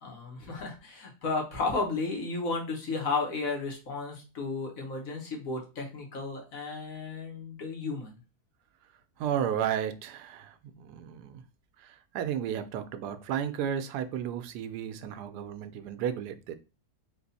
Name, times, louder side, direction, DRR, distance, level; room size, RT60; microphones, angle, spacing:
voice 1, 0.0-8.2, left 3 dB, 60° left, 1.5 m, -33 dB
voice 2, 9.2-11.4 11.8-16.6, right 9 dB, 90° right, 1.2 m, -33 dB
4.0 x 2.5 x 4.0 m
omnidirectional pair, 1.7 m